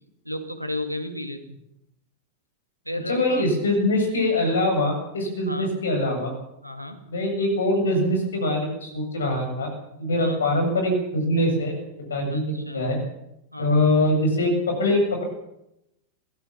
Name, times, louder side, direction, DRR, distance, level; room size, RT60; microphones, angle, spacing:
voice 1, 0.3-1.6 2.9-3.4 5.5-5.7 6.6-7.0 10.2-10.5 12.3-12.8 13.5-13.8, left 1 dB, 90° right, 8 dB, 2.5 m, -33 dB
voice 2, 3.1-6.3 7.1-9.7 10.0-11.7 12.1-13.0 13.6-15.2, left 1 dB, 70° left, 3 dB, 7.7 m, -23 dB
22.5 x 16.0 x 7.4 m, 0.84 s
figure-of-eight pair, 90°, 0 cm